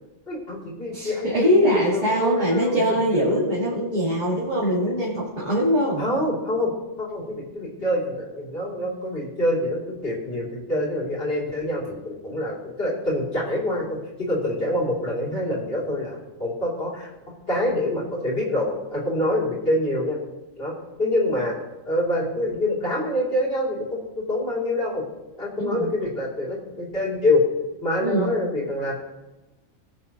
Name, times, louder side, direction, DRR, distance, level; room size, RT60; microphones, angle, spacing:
voice 1, 0.3-1.5 1.9-3.0 6.0-6.7 7.0-17.1 17.5-20.2 20.6-20.7 21.0-21.6 21.9-25.0 25.4-27.4 27.8-28.9, left 1 dB, 45° left, -4 dB, 3.1 m, -26 dB
voice 2, 0.9-6.0 25.6-25.9 28.0-28.3, equal, 35° right, -6 dB, 2.0 m, -22 dB
18.5 x 6.9 x 2.9 m, 1.1 s
omnidirectional pair, 1.4 m